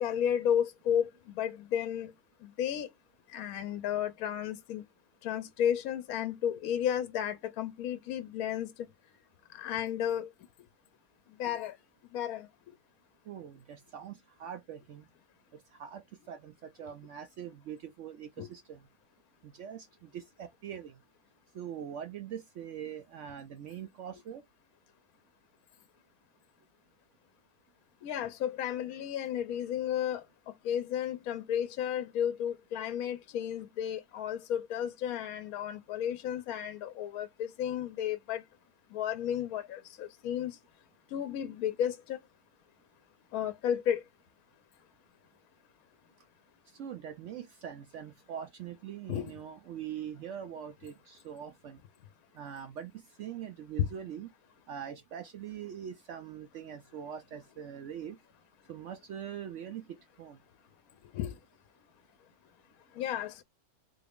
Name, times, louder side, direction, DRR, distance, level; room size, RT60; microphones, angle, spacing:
voice 1, 0.0-1.1 1.4-2.1 2.6-2.9 3.3-4.8 5.2-8.7 9.6-10.3 11.4-11.7 12.1-12.4 18.4-18.5 28.0-30.2 30.7-38.4 38.9-40.5 41.1-42.2 43.3-44.0 49.1-49.3 53.8-53.9 61.1-61.3 63.0-63.4, left 9 dB, 75° left, 1.0 m, -32 dB
voice 2, 13.3-15.1 15.7-18.8 19.4-21.0 21.5-24.4 46.8-51.8 52.3-54.3 54.7-58.2 58.7-59.8 60.2-60.4, right 9 dB, 65° right, 0.7 m, -43 dB
3.9 x 2.3 x 3.4 m
omnidirectional pair, 1.6 m